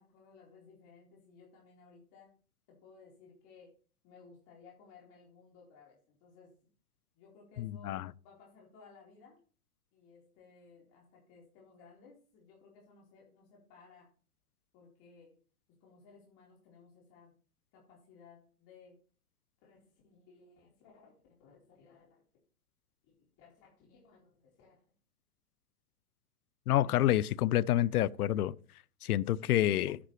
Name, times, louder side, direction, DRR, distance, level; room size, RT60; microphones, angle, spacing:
voice 1, 0.0-2.4 2.7-3.7 4.0-6.5 7.1-9.4 9.9-14.1 14.7-15.4 15.7-17.4 17.7-19.0 19.6-22.2 23.0-24.8, left 5 dB, 40° left, 4.2 m, -59 dB
voice 2, 7.6-8.1 26.7-28.5 29.0-30.0, left 13 dB, 75° left, 0.6 m, -28 dB
11.0 x 9.8 x 3.2 m
hypercardioid pair, 120°, 45 cm